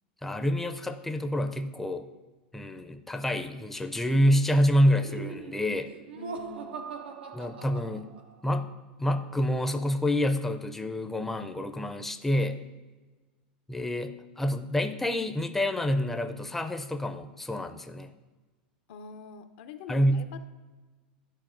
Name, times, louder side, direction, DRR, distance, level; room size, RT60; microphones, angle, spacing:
voice 1, 0.2-2.1 2.5-5.9 7.3-8.1 8.4-8.7 9.0-12.6 13.7-18.1 19.9-20.2, equal, 5° left, 6 dB, 0.4 m, -27 dB
Laughter, 4.8-8.5, right 5 dB, 85° right, 0.6 m, -41 dB
voice 2, 6.2-6.8 18.9-20.4, left 6 dB, 65° left, 10 dB, 0.5 m, -45 dB
11.5 x 4.1 x 2.5 m, 1.3 s
hypercardioid pair, 100°, 5 cm